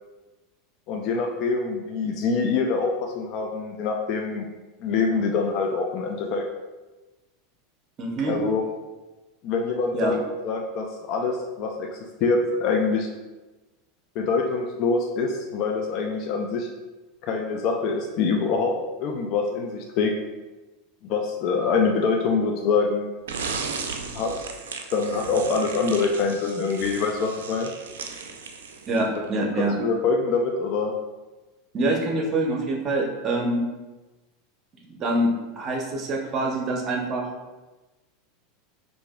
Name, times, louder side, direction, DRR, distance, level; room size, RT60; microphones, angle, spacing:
voice 1, 0.9-4.5 4.8-6.4 8.3-8.7 9.4-13.1 14.2-16.7 17.2-20.1 21.0-23.1 24.1-24.4 24.9-27.7 29.4-30.9, left 4 dB, 55° left, 2 dB, 0.4 m, -25 dB
voice 2, 8.0-8.4 9.9-10.2 28.9-29.8 31.7-33.7 34.9-37.3, right 2 dB, 40° right, 2 dB, 0.7 m, -25 dB
sound 1, 23.3-29.2, right 5 dB, 80° right, 0.4 m, -35 dB
4.6 x 2.6 x 2.3 m, 1.1 s
hypercardioid pair, 90°, 0 cm